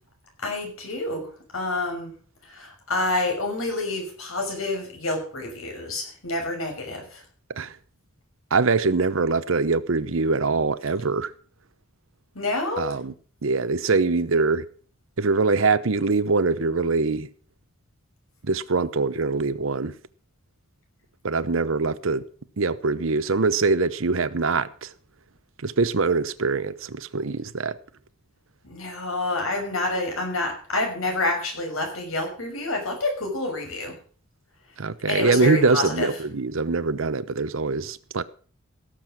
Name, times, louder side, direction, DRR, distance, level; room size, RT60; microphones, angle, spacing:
voice 1, 0.4-2.2 2.4-7.2 12.3-12.9 28.6-34.0 35.0-36.1, left 2 dB, 80° left, 6.0 m, -28 dB
voice 2, 8.5-11.3 12.8-13.1 13.4-14.6 15.2-17.3 18.4-19.9 21.2-22.3 22.6-24.9 25.6-27.8 34.8-38.2, right 4 dB, 70° right, 0.8 m, -23 dB
17.0 x 7.7 x 6.3 m
head